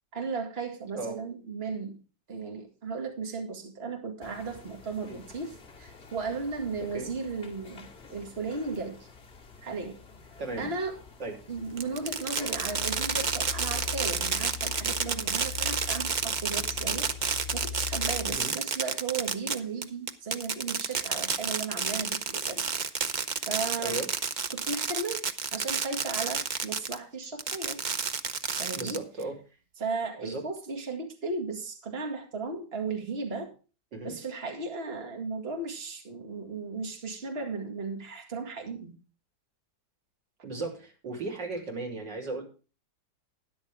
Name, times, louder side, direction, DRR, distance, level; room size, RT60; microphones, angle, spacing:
voice 1, 0.1-2.0 2.3-9.1 9.6-10.0 10.6-11.0 11.5-22.6 23.5-24.0 24.5-25.2 25.5-27.8 28.6-29.0 29.8-33.5 34.0-39.0, right 4 dB, 35° right, 3 dB, 2.2 m, -35 dB
sound 1, 4.2-17.3, left 4 dB, 35° left, 2.2 m, -51 dB
voice 2, 10.4-10.7 11.2-11.3 18.2-18.5 23.8-24.1 28.7-29.4 30.2-30.5 33.9-34.1 40.4-42.4, right 3 dB, 85° right, 1 dB, 3.9 m, -35 dB
Fireworks, 11.8-27.0 27.4-29.2, right 6 dB, 70° right, 0.4 m, -30 dB
sound 2, 12.4-18.4, left 6 dB, 65° left, 0.5 m, -40 dB
13.0 x 10.0 x 3.5 m, 0.34 s
omnidirectional pair, 1.9 m